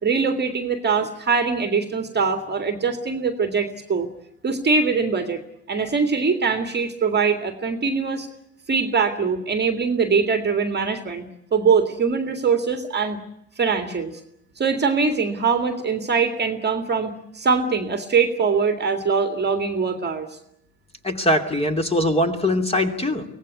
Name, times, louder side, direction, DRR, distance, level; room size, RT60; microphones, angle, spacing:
voice 1, 0.0-4.1 4.4-5.4 5.7-8.3 8.7-13.2 13.6-14.2 14.6-20.3, right 5 dB, 20° right, 7 dB, 2.2 m, -22 dB
voice 2, 21.0-23.2, left 1 dB, 10° left, 6 dB, 2.8 m, -21 dB
24.5 x 18.0 x 9.6 m, 0.78 s
hypercardioid pair, 80°, 49 cm